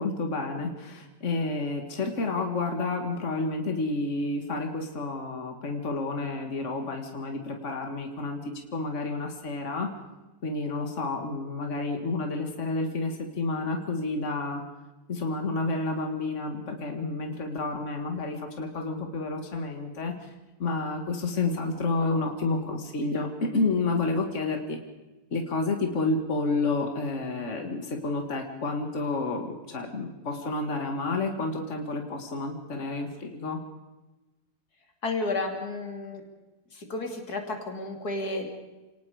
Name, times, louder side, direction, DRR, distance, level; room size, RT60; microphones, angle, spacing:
voice 1, 0.0-9.9 10.4-14.6 15.1-20.3 20.6-24.8 25.3-33.6, left 3 dB, 50° left, 4 dB, 2.3 m, -30 dB
voice 2, 35.0-36.2 36.7-38.5, left 2 dB, 90° left, 4 dB, 3.3 m, -32 dB
29.0 x 18.5 x 5.0 m, 1.1 s
omnidirectional pair, 1.6 m